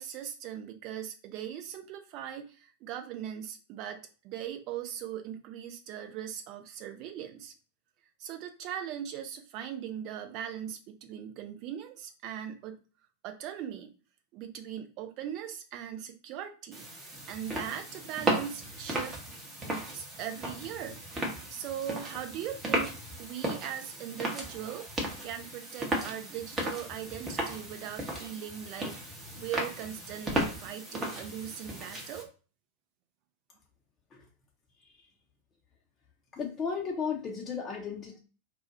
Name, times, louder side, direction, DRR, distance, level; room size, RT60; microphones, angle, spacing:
voice 1, 0.0-7.5 8.2-12.8 13.2-13.9 14.3-16.9 17.3-19.2 19.9-21.0 21.5-22.9 23.2-24.9 25.2-28.9 29.4-32.3, right 10 dB, 40° right, 6 dB, 0.5 m, -39 dB
sound 1, 16.7-32.2, right 1 dB, 20° right, 0.8 m, -35 dB
voice 2, 36.3-38.2, left 6 dB, 20° left, 0 dB, 0.5 m, -34 dB
2.3 x 2.1 x 3.8 m, 0.36 s
figure-of-eight pair, 90°, 0 cm